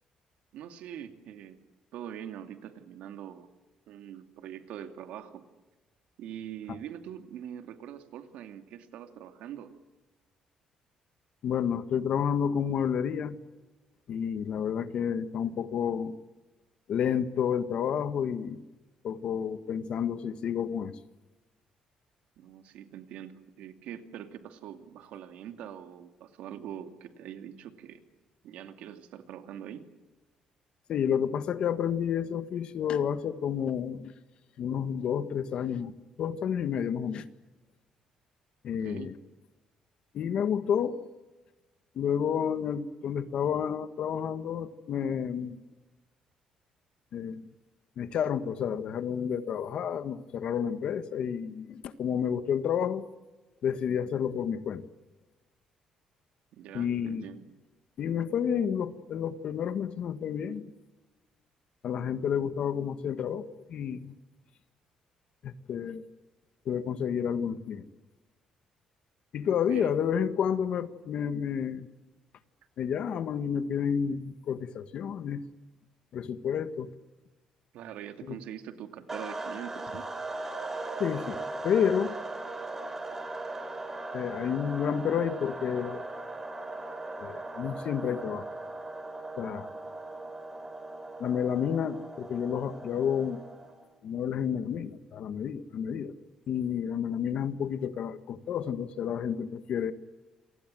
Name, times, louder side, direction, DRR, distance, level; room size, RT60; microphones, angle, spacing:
voice 1, 0.5-1.6 1.9-3.5 3.9-5.4 6.2-9.7 22.4-23.3 23.6-28.0 28.4-29.9 38.8-39.1 56.5-57.5 69.7-69.9 77.7-80.1, right 10 dB, 80° right, 7 dB, 2.6 m, -43 dB
voice 2, 11.4-13.4 14.1-16.1 16.9-18.7 19.0-20.9 30.9-34.1 34.6-35.9 36.2-37.2 38.6-39.1 40.1-41.0 41.9-45.6 47.1-47.5 48.0-53.0 53.6-54.8 56.7-57.3 58.0-60.7 61.8-64.1 65.4-66.1 66.6-67.8 69.3-71.9 72.8-75.4 76.1-76.9 78.3-78.4 81.0-82.1 84.1-86.1 87.2-88.4 89.4-89.7 91.2-93.4 94.0-96.1 96.5-99.9, left 8 dB, 55° left, 12 dB, 1.6 m, -30 dB
sound 1, 79.1-93.8, right 2 dB, 15° right, 3.8 m, -39 dB
28.5 x 24.0 x 7.7 m, 1.1 s
cardioid pair, 160°, 2 cm